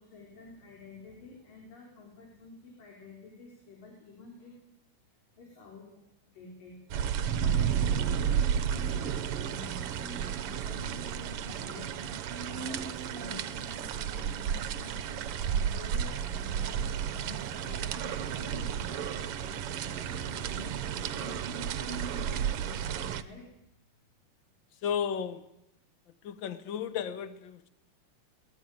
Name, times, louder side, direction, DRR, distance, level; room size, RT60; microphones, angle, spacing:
voice 1, 0.0-4.6 5.4-15.0 15.6-23.5, left 3 dB, 90° left, 0 dB, 5.9 m, -50 dB
sound 1, 6.9-23.2, right 8 dB, 65° right, 1.4 m, -32 dB
voice 2, 24.8-25.4 26.2-27.7, left 8 dB, 65° left, 13 dB, 1.1 m, -33 dB
23.0 x 19.0 x 9.5 m, 0.85 s
omnidirectional pair, 3.8 m